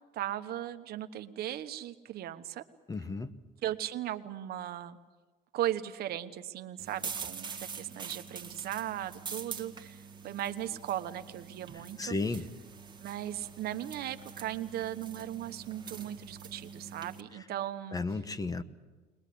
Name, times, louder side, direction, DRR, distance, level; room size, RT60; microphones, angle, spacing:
voice 1, 0.1-2.6 3.6-5.0 5.5-12.4 13.0-18.2, right 12 dB, 70° right, 10 dB, 1.1 m, -37 dB
voice 2, 2.9-3.3 12.0-12.4 17.9-18.6, left 3 dB, 20° left, 12 dB, 0.9 m, -33 dB
sound 1, 6.8-17.2, right 5 dB, 25° right, 1.7 m, -45 dB
21.5 x 20.5 x 8.5 m, 1.3 s
cardioid pair, 110°, 17 cm